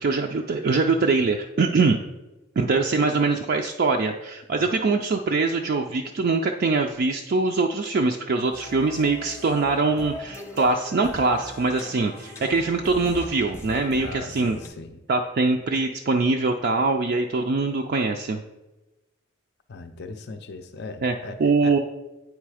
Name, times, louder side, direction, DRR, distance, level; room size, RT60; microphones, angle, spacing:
voice 1, 0.0-2.0 2.6-14.6 15.1-18.4 21.0-21.1 21.4-21.8, right 3 dB, 45° right, 2 dB, 0.3 m, -23 dB
sound 1, 8.5-14.7, left 1 dB, 15° left, 0.8 m, -40 dB
voice 2, 14.0-15.0 19.7-21.7, left 3 dB, 50° left, 7 dB, 0.5 m, -39 dB
8.5 x 3.2 x 4.8 m, 1.1 s
head